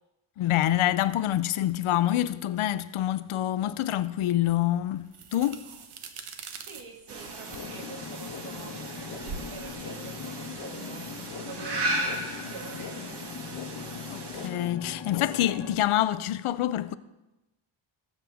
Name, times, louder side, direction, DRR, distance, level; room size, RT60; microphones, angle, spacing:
voice 1, 0.4-5.6 14.1-17.0, left 13 dB, 80° left, 0.6 m, -26 dB
sound 1, 4.5-11.2, right 5 dB, 90° right, 1.2 m, -45 dB
voice 2, 6.7-13.2 14.5-14.7, right 4 dB, 70° right, 1.9 m, -46 dB
sound 2, 7.1-14.5, right 2 dB, 50° right, 1.7 m, -36 dB
sound 3, 7.5-15.8, left 7 dB, 60° left, 1.1 m, -40 dB
19.5 x 7.5 x 3.5 m
wide cardioid pair, 155°, 49 cm